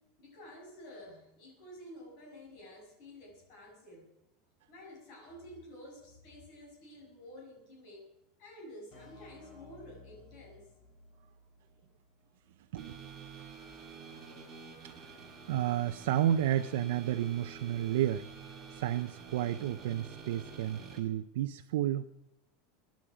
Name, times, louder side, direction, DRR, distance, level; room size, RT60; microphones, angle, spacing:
voice 1, 0.2-4.1 4.7-8.1 8.4-10.7, left 1 dB, 45° left, 0 dB, 6.5 m, -51 dB
sound 1, 8.9-12.5, left 2 dB, 30° left, 4.1 m, -57 dB
voice 2, 12.7-13.1 14.8-14.9 15.5-18.3 18.7-22.1, right 12 dB, 80° right, 6 dB, 0.6 m, -31 dB
sound 2, 12.8-21.0, right 5 dB, 10° right, 2.7 m, -49 dB
23.0 x 10.5 x 5.0 m, 0.88 s
supercardioid pair, 170°, 0 cm